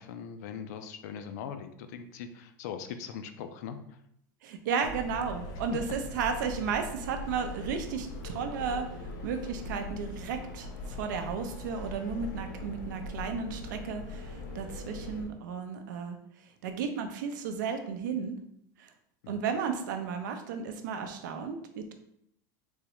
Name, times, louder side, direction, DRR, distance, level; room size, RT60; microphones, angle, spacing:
voice 1, 0.0-3.8 5.7-5.8 19.2-19.4, left 7 dB, 60° left, 9 dB, 0.4 m, -40 dB
voice 2, 4.4-8.9 9.2-16.2 16.6-18.4 18.8-18.9 19.3-21.9, right 6 dB, 75° right, 6 dB, 0.6 m, -34 dB
sound 1, 4.8-15.3, left 2 dB, 80° left, 0.9 m, -41 dB
3.6 x 3.1 x 2.9 m, 0.74 s
supercardioid pair, 180°, 10 cm